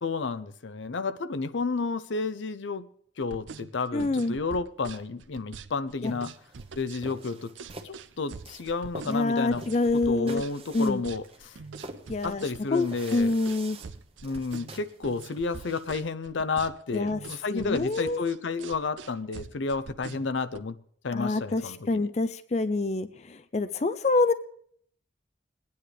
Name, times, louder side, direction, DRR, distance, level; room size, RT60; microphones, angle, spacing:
voice 1, 0.0-2.9 3.2-6.3 6.8-7.5 7.8-9.6 9.9-11.5 12.2-13.3 14.2-20.8 21.0-22.1, left 4 dB, 80° left, 13 dB, 0.6 m, -31 dB
sound 1, 3.2-20.6, right 5 dB, 85° right, 0.5 m, -44 dB
voice 2, 3.9-4.4 6.0-6.1 9.1-10.4 10.7-11.0 12.1-12.4 12.7-12.9 13.1-13.8 16.9-17.2 17.5-18.2 21.1-24.3, left 3 dB, 35° left, 13 dB, 0.4 m, -26 dB
sound 2, 6.0-16.1, right 2 dB, 30° right, 1.0 m, -47 dB
22.0 x 9.5 x 3.3 m, 0.63 s
head